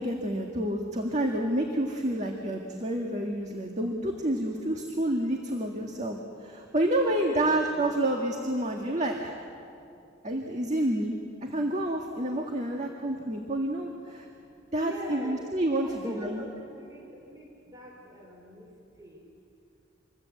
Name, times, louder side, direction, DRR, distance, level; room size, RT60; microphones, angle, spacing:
voice 1, 0.0-9.3 10.2-11.2 11.4-14.3 14.7-16.4, right 1 dB, 35° right, 1 dB, 1.8 m, -29 dB
voice 2, 7.0-7.8 13.8-13.9 14.8-15.5 15.8-18.7 19.0-19.2, equal, 20° right, -1 dB, 3.9 m, -42 dB
27.0 x 21.5 x 8.4 m, 2.6 s
head